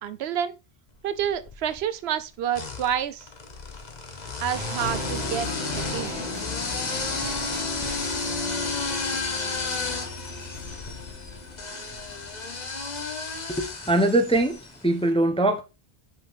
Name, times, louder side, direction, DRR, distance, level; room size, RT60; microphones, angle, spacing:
voice 1, 0.0-0.6 1.0-3.3 4.4-6.1, right 9 dB, 80° right, 0.9 m, -29 dB
sound 1, 1.1-1.8 2.5-14.8, left 4 dB, 45° left, 1.0 m, -33 dB
sound 2, 4.2-13.6 13.9-14.0, equal, 25° right, 1.3 m, -40 dB
sound 3, 4.8-12.9, left 2 dB, 65° left, 1.7 m, -39 dB
voice 2, 13.5-15.6, right 1 dB, 5° left, 0.5 m, -22 dB
5.3 x 5.1 x 3.9 m
omnidirectional pair, 1.1 m